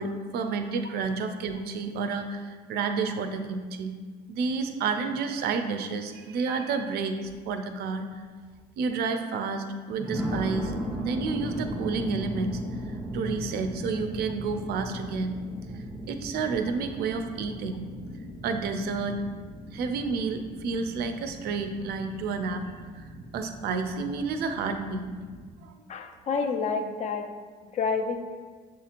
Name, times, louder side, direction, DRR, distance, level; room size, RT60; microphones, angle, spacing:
voice 1, 0.0-3.9 4.3-8.3 8.8-10.8 11.0-12.6 12.9-15.4 15.7-17.9 18.4-19.2 19.7-22.6 23.0-23.1 23.3-25.1 25.6-25.7, right 4 dB, 70° right, 7 dB, 0.4 m, -30 dB
sound 1, 7.2-7.5 8.1-8.2 10.0-25.5, right 1 dB, 5° right, 0.5 m, -37 dB
voice 2, 25.9-27.3 27.7-28.3, left 5 dB, 45° left, 6 dB, 0.4 m, -29 dB
6.1 x 2.9 x 2.5 m, 1.5 s
cardioid pair, 110°, 17 cm